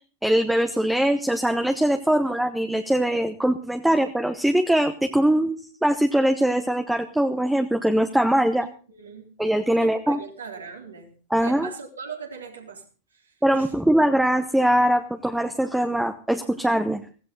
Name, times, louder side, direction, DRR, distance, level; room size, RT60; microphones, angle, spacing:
voice 1, 0.2-8.7 9.4-10.2 11.3-11.7 13.4-17.0, right 1 dB, 5° right, 8 dB, 1.0 m, -22 dB
voice 2, 8.6-9.3 9.8-12.8 13.1-13.7, right 5 dB, 75° right, 1 dB, 3.9 m, -40 dB
16.5 x 15.5 x 4.0 m, 0.38 s
figure-of-eight pair, 90°, 0 cm